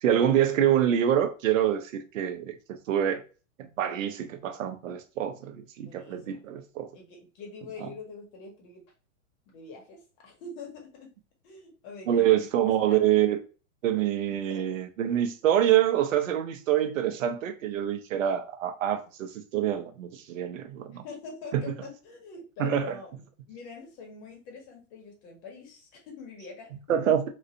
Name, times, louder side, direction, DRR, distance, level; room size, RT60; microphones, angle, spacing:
voice 1, 0.0-3.2 3.6-6.9 12.1-13.4 13.8-21.0 21.5-21.7 22.6-23.0 26.9-27.2, right 10 dB, 75° right, 0.8 m, -26 dB
voice 2, 5.8-6.4 6.9-8.8 9.5-11.1 11.4-12.6 12.9-13.0 14.3-14.8 20.9-23.1 23.5-27.1, left 4 dB, 50° left, 1.8 m, -44 dB
4.0 x 2.6 x 2.5 m
hypercardioid pair, 115°, 39 cm